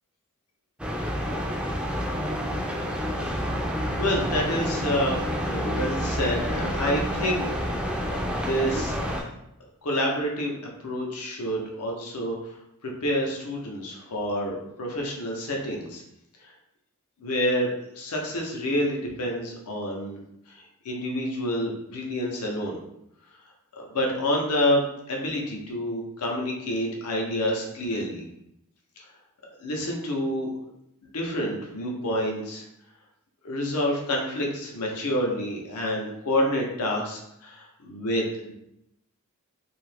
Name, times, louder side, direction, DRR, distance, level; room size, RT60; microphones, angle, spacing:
sound 1, 0.8-9.2, equal, 5° right, 0.3 m, -28 dB
voice 1, 4.0-7.5 8.0-9.2 9.8-10.5 10.8-12.6 12.8-16.0 16.4-16.5 17.2-20.2 20.5-22.8 23.7-28.2 29.0-29.1 29.6-30.5 31.1-32.6 33.4-38.3, equal, 85° left, 0 dB, 0.7 m, -28 dB
2.7 x 2.4 x 3.3 m, 0.80 s
head